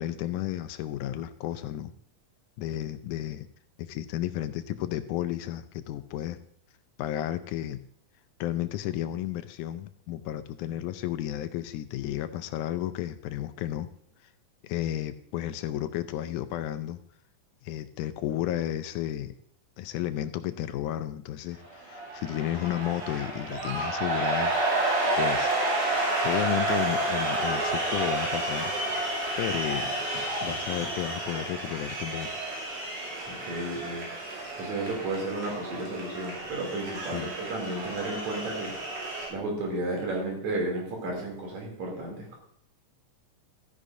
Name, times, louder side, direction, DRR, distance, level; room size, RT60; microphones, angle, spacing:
voice 1, 0.0-1.9 2.6-3.5 3.8-6.4 7.0-7.8 8.4-13.9 14.6-17.0 17.6-19.3 19.8-24.5 25.2-25.5 26.2-28.7 29.4-29.8 30.4-32.3 37.1-37.3, left 12 dB, 85° left, 11 dB, 2.1 m, -32 dB
sound 1, 21.6-39.3, right 2 dB, 90° right, 4.3 m, -30 dB
voice 2, 33.3-34.1 34.6-38.7 39.3-42.4, right 2 dB, 65° right, -1 dB, 4.2 m, -33 dB
13.5 x 10.0 x 2.7 m, 0.63 s
omnidirectional pair, 3.6 m